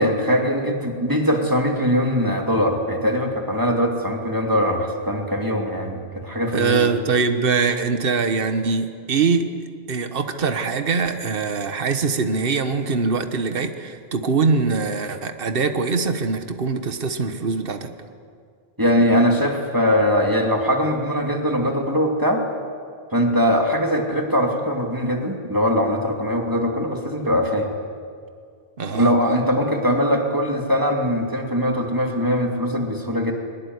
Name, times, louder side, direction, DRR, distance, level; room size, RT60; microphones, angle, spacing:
voice 1, 0.0-6.9 18.8-22.4 23.1-27.7 28.9-33.3, equal, 20° right, 1 dB, 2.6 m, -21 dB
voice 2, 6.5-9.5 9.9-17.9 28.8-29.1, right 4 dB, 60° right, 8 dB, 1.4 m, -22 dB
23.0 x 20.0 x 9.6 m, 2.2 s
omnidirectional pair, 1.1 m